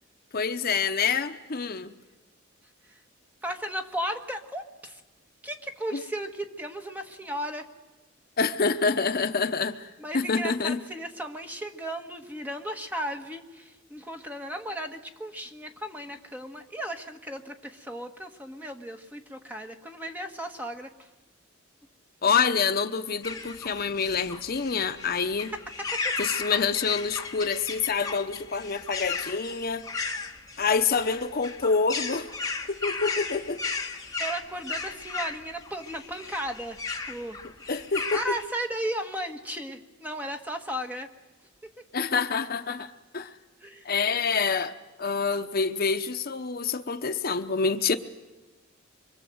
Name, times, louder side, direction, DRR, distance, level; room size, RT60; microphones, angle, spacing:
voice 1, 0.3-1.9 5.9-6.0 8.4-9.9 10.1-10.8 22.2-25.5 26.2-29.8 30.6-32.3 32.7-33.6 37.7-38.4 41.9-43.3 43.8-44.7 45.0-48.0, left 5 dB, 50° left, 9 dB, 0.8 m, -27 dB
voice 2, 3.4-5.0 5.4-7.7 10.0-21.1 25.5-25.6 25.9-26.2 34.2-37.4 38.1-41.1 43.6-43.9, right 1 dB, 10° right, 4 dB, 1.5 m, -35 dB
sound 1, 23.2-38.4, left 4 dB, 20° left, 1.7 m, -35 dB
24.5 x 24.5 x 7.9 m, 1.1 s
head